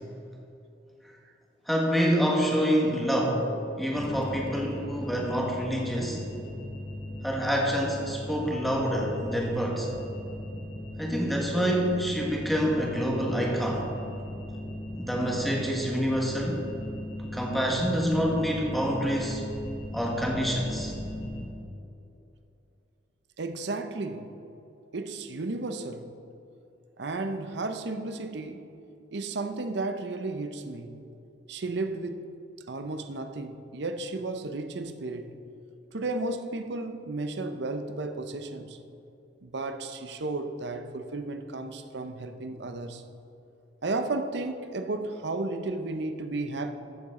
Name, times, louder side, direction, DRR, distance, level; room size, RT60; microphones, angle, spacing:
voice 1, 1.7-3.5 3.8-6.2 7.2-9.9 11.0-13.9 15.0-16.6 17.3-19.4 19.9-20.9, equal, ahead, -2 dB, 1.5 m, -27 dB
sound 1, 4.0-21.4, left 1 dB, 30° left, 1.1 m, -38 dB
voice 2, 23.4-24.3 24.9-26.1 27.0-28.7 29.1-31.0 31.5-32.2 32.7-35.4 35.9-38.8 39.4-43.0 43.8-46.7, right 2 dB, 60° right, 8 dB, 0.6 m, -33 dB
14.0 x 7.2 x 3.7 m, 2.7 s
head